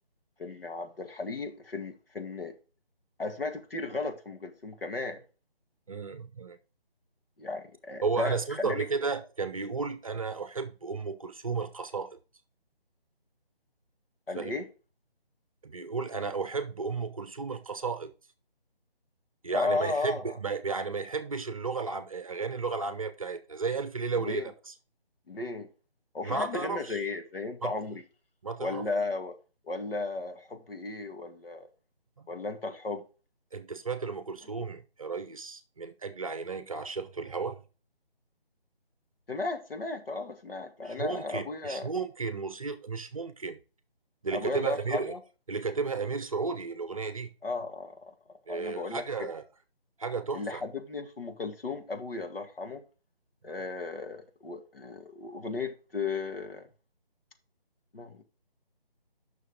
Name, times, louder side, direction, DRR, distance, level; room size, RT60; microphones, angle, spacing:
voice 1, 0.4-2.5 3.2-5.2 7.4-8.9 14.3-14.7 19.5-20.3 24.2-24.5 25.3-25.7 26.1-28.0 28.6-29.3 29.6-31.7 32.3-33.0 39.3-41.9 44.3-45.2 47.4-48.1 48.5-49.3 50.3-52.8 53.4-56.7 57.9-58.2, left 3 dB, 65° left, 2.0 m, -35 dB
voice 2, 5.9-6.6 8.0-12.2 14.4-14.5 15.6-18.1 19.4-24.7 26.2-27.0 27.6-27.7 28.4-28.8 32.2-32.3 33.5-37.6 40.8-43.6 44.2-45.2 45.5-47.3 48.5-49.4 50.0-50.6 53.4-53.5, right 4 dB, 35° right, 0.8 m, -33 dB
9.5 x 6.2 x 3.6 m
figure-of-eight pair, 155°, 30 cm